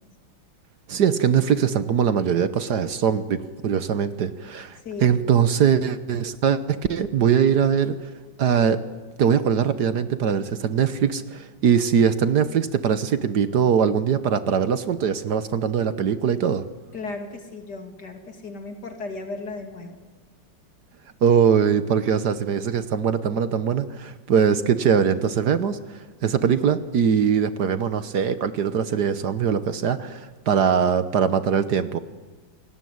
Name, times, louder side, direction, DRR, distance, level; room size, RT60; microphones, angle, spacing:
voice 1, 0.9-8.0 8.4-8.8 9.2-16.6 21.2-32.0, right 7 dB, 60° right, 13 dB, 1.5 m, -22 dB
voice 2, 4.9-5.2 16.9-20.0, left 3 dB, 55° left, 5 dB, 3.4 m, -35 dB
28.5 x 19.0 x 9.5 m, 1.3 s
omnidirectional pair, 2.1 m